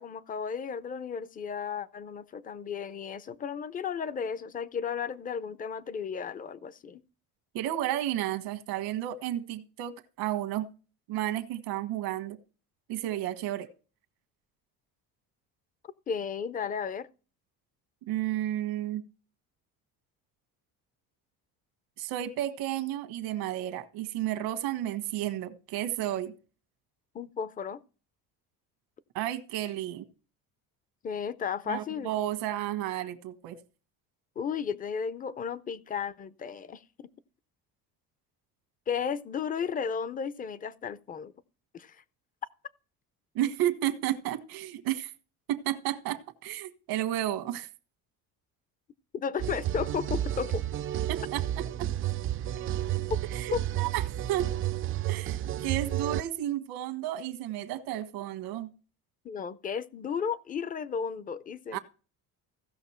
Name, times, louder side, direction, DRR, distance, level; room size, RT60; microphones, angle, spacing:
voice 1, 0.0-7.0 16.1-17.1 27.1-27.8 31.0-32.1 34.4-36.8 38.9-41.3 41.7-42.0 49.1-50.6 53.1-53.2 53.5-53.6 59.2-61.8, left 6 dB, 25° left, 0.5 m, -34 dB
voice 2, 7.5-10.7 11.1-12.4 12.9-13.7 18.1-19.0 22.0-26.3 29.1-30.0 31.7-33.6 43.3-45.1 45.5-47.7 51.1-51.9 52.6-52.7 53.3-54.5 55.1-58.7 61.7-61.8, right 13 dB, 85° right, 1.4 m, -32 dB
sound 1, 49.4-56.2, right 12 dB, 35° right, 0.4 m, -31 dB
16.0 x 6.0 x 4.3 m
cardioid pair, 140°, 36 cm